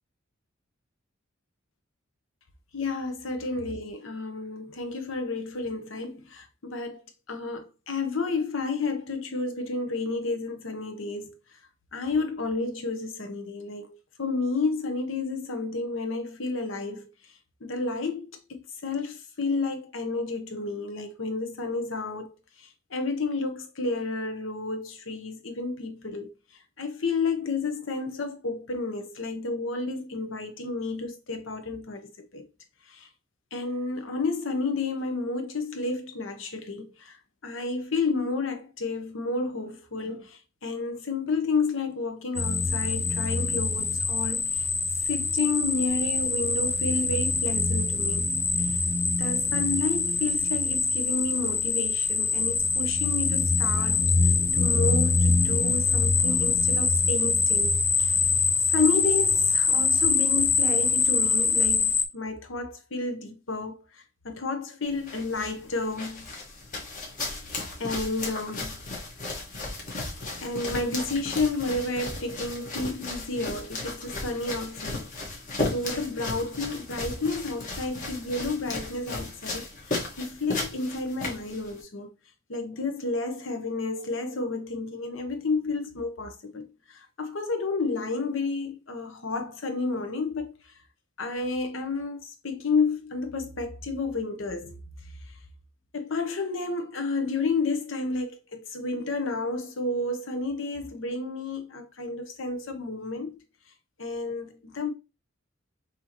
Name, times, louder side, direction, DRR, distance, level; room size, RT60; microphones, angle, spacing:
voice 1, 2.7-7.0 7.3-11.4 11.9-17.3 17.6-26.3 26.8-32.4 32.9-33.1 33.5-37.2 37.4-44.7 45.0-48.3 48.6-48.8 49.2-58.2 58.7-66.3 67.4-67.5 67.8-68.8 70.4-79.7 80.2-82.1 82.5-90.7 91.2-94.8 95.3-95.4 95.9-103.4 104.0-104.9, left 3 dB, 75° left, 0.9 m, -31 dB
sound 1, 42.4-62.0, left 4 dB, 10° left, 0.4 m, -24 dB
sound 2, 64.8-81.8, left 2 dB, 45° left, 1.5 m, -35 dB
6.1 x 2.9 x 3.0 m
head